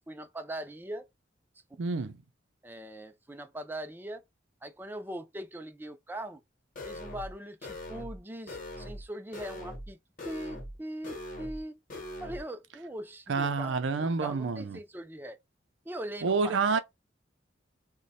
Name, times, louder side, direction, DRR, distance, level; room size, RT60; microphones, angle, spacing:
voice 1, 0.1-1.1 1.7-1.8 2.6-4.2 4.6-6.4 6.8-10.0 10.2-11.8 12.2-15.4 15.8-16.8, right 1 dB, 10° right, 0.4 m, -41 dB
voice 2, 1.8-2.2 13.3-14.8 16.2-16.8, right 4 dB, 90° right, 0.5 m, -28 dB
sound 1, 6.8-7.3 7.6-8.2 8.5-9.0 9.3-9.9 10.2-10.8 11.0-11.6 11.9-12.4, left 1 dB, 45° left, 0.9 m, -41 dB
3.0 x 2.2 x 4.0 m
head